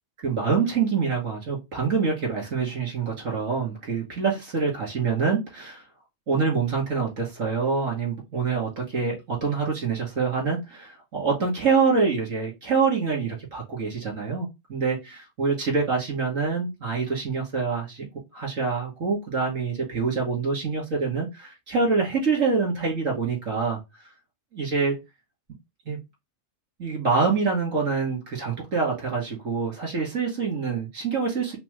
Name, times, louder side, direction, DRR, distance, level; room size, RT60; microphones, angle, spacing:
voice 1, 0.2-5.8 6.3-18.1 18.3-23.8 24.5-25.0 25.9-26.0 26.8-31.6, right 5 dB, 75° right, -2 dB, 2.6 m, -26 dB
5.8 x 2.0 x 3.3 m, 0.22 s
omnidirectional pair, 1.3 m